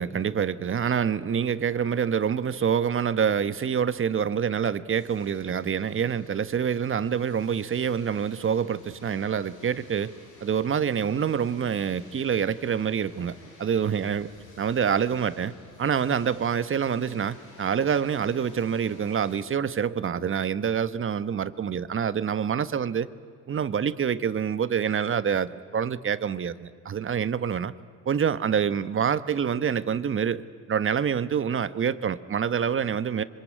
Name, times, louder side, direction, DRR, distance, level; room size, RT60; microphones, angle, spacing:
voice 1, 0.0-10.1 10.4-14.3 14.6-15.5 15.8-23.1 23.5-27.7 28.1-30.4 30.7-33.2, right 7 dB, 45° right, 14 dB, 1.2 m, -26 dB
sound 1, 4.9-19.4, left 3 dB, 80° left, 7.1 m, -52 dB
26.0 x 25.0 x 9.2 m, 2.1 s
cardioid pair, 90°, 30 cm